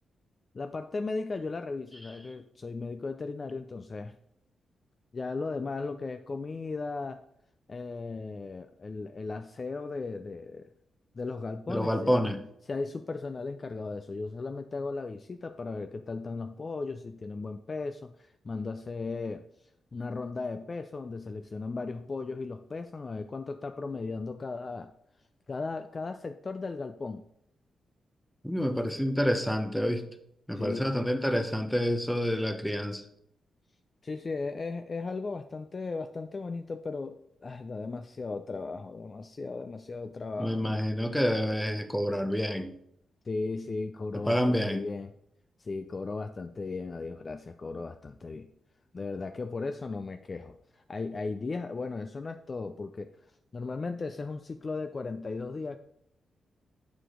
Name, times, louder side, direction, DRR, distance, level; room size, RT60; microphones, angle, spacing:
voice 1, 0.5-4.2 5.1-7.2 7.7-10.7 11.1-12.2 12.7-19.5 19.9-24.9 25.5-27.3 30.5-30.9 34.0-40.6 43.3-45.1 45.6-48.5 48.9-53.1 53.5-55.8, left 3 dB, 35° left, 0.4 m, -36 dB
voice 2, 11.7-12.4 28.4-30.0 30.5-33.0 40.4-42.7 44.3-44.9, equal, ahead, 0.7 m, -28 dB
8.1 x 4.8 x 3.8 m
cardioid pair, 95°, 0 cm